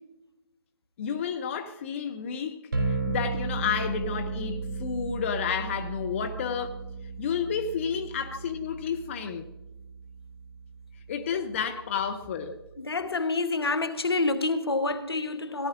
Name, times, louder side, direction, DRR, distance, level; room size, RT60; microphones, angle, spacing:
voice 1, 1.0-6.9 7.2-9.5 11.1-12.6, left 7 dB, 30° left, 0.6 m, -31 dB
sound 1, 2.7-12.8, right 3 dB, 50° right, 3.8 m, -35 dB
voice 2, 12.8-15.7, left 3 dB, 70° left, 1.2 m, -27 dB
17.5 x 11.0 x 2.5 m
figure-of-eight pair, 145°, 13 cm